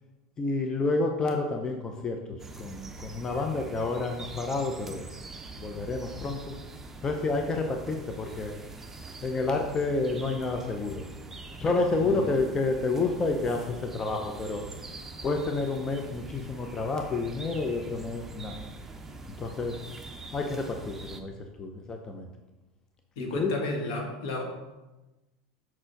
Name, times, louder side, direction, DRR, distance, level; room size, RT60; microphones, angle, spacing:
voice 1, 0.4-2.2 2.6-5.0 5.6-6.5 7.0-8.5 9.2-11.0 11.6-14.6 15.2-18.7 19.3-19.7 20.3-21.3 21.6-22.3 23.2-23.5, left 3 dB, 25° left, 4 dB, 0.7 m, -29 dB
sound 1, 2.4-21.2, right 3 dB, 15° right, 0.7 m, -44 dB
voice 2, 11.9-12.4 23.2-24.4, left 2 dB, 70° left, 1 dB, 1.5 m, -32 dB
6.1 x 4.4 x 4.5 m, 1.1 s
hypercardioid pair, 100°, 3 cm